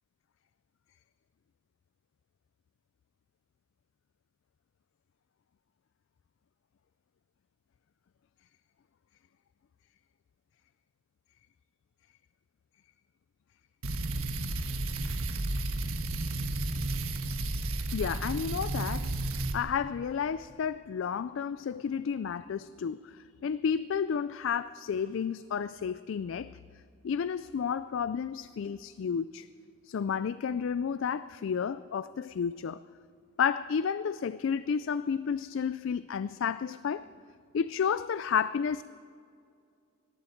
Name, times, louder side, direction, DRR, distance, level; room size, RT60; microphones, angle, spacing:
sound 1, 13.8-19.6, right 2 dB, 70° right, 1.4 m, -32 dB
voice 1, 17.9-19.3 19.5-26.5 27.0-29.5 29.9-32.8 33.4-37.0 37.5-38.8, left 7 dB, 60° left, 15 dB, 0.3 m, -31 dB
20.0 x 15.0 x 4.5 m, 2.4 s
head